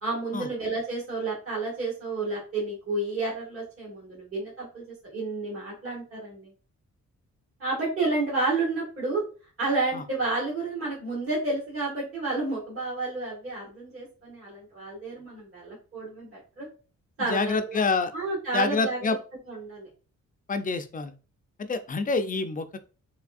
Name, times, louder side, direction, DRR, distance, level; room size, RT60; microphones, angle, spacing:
voice 1, 0.0-4.8 5.1-6.5 7.6-9.2 9.6-16.7 17.2-17.8 18.1-19.2 19.5-19.9, right 3 dB, 50° right, -6 dB, 1.7 m, -30 dB
voice 2, 17.2-18.1 18.5-19.2 20.5-21.1 21.6-22.8, left 4 dB, 30° left, 8 dB, 0.4 m, -27 dB
3.4 x 3.1 x 2.4 m, 0.37 s
wide cardioid pair, 150°, 30 cm